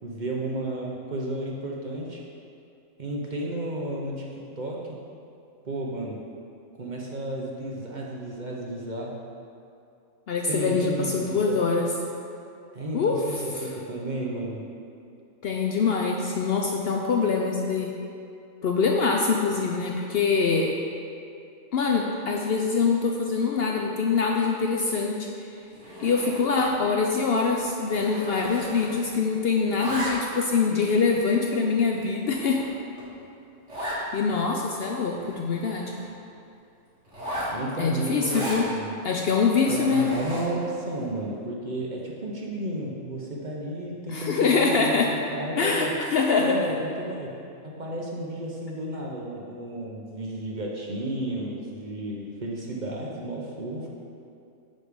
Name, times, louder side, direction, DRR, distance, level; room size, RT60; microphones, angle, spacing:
voice 1, 0.0-2.2 3.0-5.0 5.6-6.2 6.7-9.2 10.5-11.4 12.7-14.6 37.5-38.9 39.6-45.9 46.4-47.3 47.6-53.9, right 1 dB, 45° right, -3 dB, 0.8 m, -33 dB
voice 2, 10.3-11.9 12.9-13.2 15.4-17.9 18.6-20.7 21.7-25.3 26.0-32.6 34.1-35.9 37.8-38.7 39.0-40.1 44.1-45.1 45.6-46.5, left 4 dB, 65° left, 0 dB, 0.7 m, -24 dB
Zipper (clothing), 25.7-26.7 27.0-27.3 27.5-29.2 29.5-30.5 31.1-31.2 31.8-31.9 32.3-32.4 32.6-32.7 33.0-33.1 33.7-34.0 34.5-34.6 34.8-36.1 37.0-38.7 39.2-40.6, equal, 65° right, 2.1 m, -36 dB
9.3 x 3.3 x 5.1 m, 2.5 s
omnidirectional pair, 1.3 m